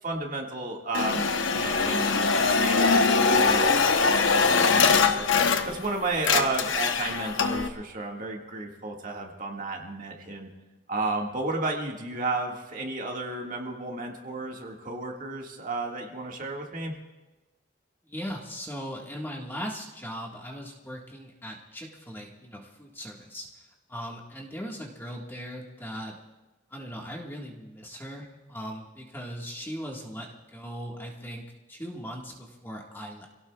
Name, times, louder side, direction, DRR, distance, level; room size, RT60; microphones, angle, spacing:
voice 1, 0.0-4.5 4.9-10.5 10.9-16.9, right 2 dB, 40° right, 0 dB, 1.9 m, -33 dB
sound 1, 0.9-5.9 6.2-7.7, left 4 dB, 70° left, 0.9 m, -22 dB
voice 2, 18.0-23.5 23.9-26.2 26.7-31.4 31.7-33.3, equal, 10° left, -1 dB, 1.6 m, -39 dB
27.5 x 17.0 x 2.4 m, 1.2 s
head